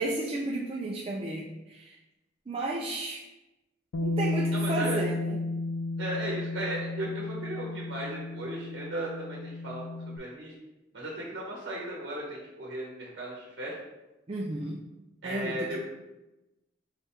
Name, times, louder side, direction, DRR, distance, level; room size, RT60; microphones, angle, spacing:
voice 1, 0.0-2.0 2.5-3.2 4.0-5.4 14.3-14.8 15.2-15.8, right 2 dB, 30° right, -3 dB, 0.3 m, -33 dB
Bass guitar, 3.9-10.2, left 2 dB, 80° left, 0.3 m, -33 dB
voice 2, 4.5-5.0 6.0-10.5 10.9-13.8 15.2-15.9, right 1 dB, 65° right, -3 dB, 0.9 m, -36 dB
4.8 x 3.4 x 2.8 m, 1.0 s
head